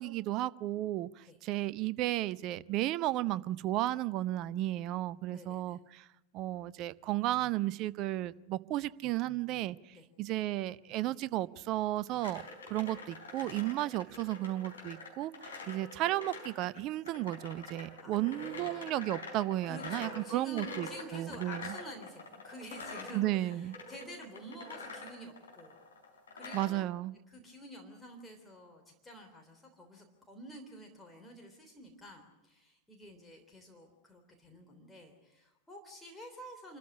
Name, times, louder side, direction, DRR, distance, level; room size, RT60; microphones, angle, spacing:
voice 1, 0.0-6.1 6.3-21.8 23.1-23.8 26.5-27.2, right 15 dB, 40° right, 0.7 m, -34 dB
voice 2, 5.3-5.8 9.9-10.1 15.6-15.8 18.0-18.9 19.6-25.8 26.3-26.8 27.3-36.8, equal, 10° left, 3.4 m, -50 dB
sound 1, 12.2-26.8, left 3 dB, 70° left, 4.3 m, -46 dB
26.5 x 14.0 x 9.9 m
figure-of-eight pair, 90°, 0 cm